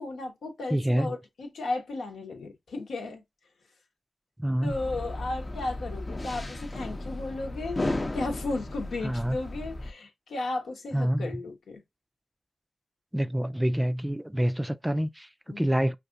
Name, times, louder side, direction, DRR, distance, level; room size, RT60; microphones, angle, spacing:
voice 1, 0.0-3.2 4.6-7.8 8.1-11.8 15.5-15.6, left 2 dB, 85° left, 1.0 m, -34 dB
voice 2, 0.7-1.1 4.4-4.7 9.0-9.4 10.9-11.3 13.1-15.3 15.6-16.0, equal, 10° right, 0.3 m, -26 dB
sound 1, 4.7-9.9, left 2 dB, 35° left, 0.6 m, -34 dB
5.3 x 2.5 x 2.5 m
cardioid pair, 50°, 0 cm